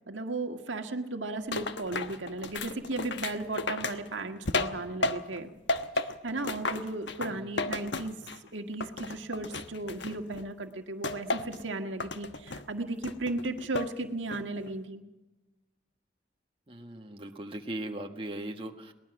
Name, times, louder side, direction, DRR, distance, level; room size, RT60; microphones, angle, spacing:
voice 1, 0.1-5.5 5.9-8.2 8.5-15.0, right 2 dB, 85° right, 5 dB, 1.7 m, -35 dB
sound 1, 1.5-5.4 5.7-8.5 8.8-10.4 11.0-11.6 12.0-12.6 13.0-13.9 14.3-14.7, left 3 dB, 70° left, 1.2 m, -34 dB
voice 2, 16.7-18.9, right 1 dB, 30° right, 3 dB, 1.5 m, -39 dB
22.5 x 19.5 x 6.1 m, 1.0 s
head